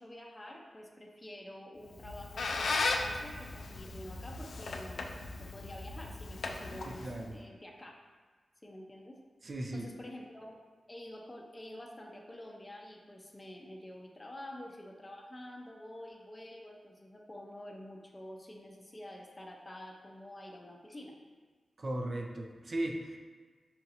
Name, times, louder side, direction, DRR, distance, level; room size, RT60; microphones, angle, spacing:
voice 1, 0.0-5.0 5.4-8.0 8.6-9.2 9.7-10.6 10.9-21.2, left 1 dB, 25° left, 0 dB, 0.5 m, -48 dB
Squeak, 1.9-7.3, left 3 dB, 80° left, 0.3 m, -37 dB
voice 2, 6.9-7.4 9.4-9.9 21.8-23.2, right 1 dB, 45° right, 2 dB, 0.5 m, -37 dB
5.7 x 2.7 x 2.5 m, 1.4 s
cardioid pair, 70°, 0 cm